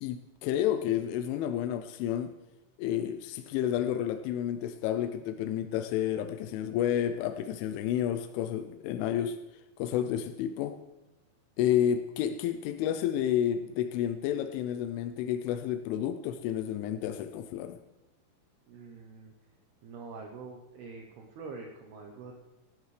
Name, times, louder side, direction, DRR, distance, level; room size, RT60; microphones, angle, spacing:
voice 1, 0.0-2.3 2.8-9.4 9.8-10.8 11.6-17.8, left 10 dB, 85° left, 3.1 m, -30 dB
voice 2, 18.7-19.3 19.8-22.3, right 4 dB, 70° right, 2.5 m, -45 dB
17.5 x 13.5 x 3.3 m
omnidirectional pair, 5.5 m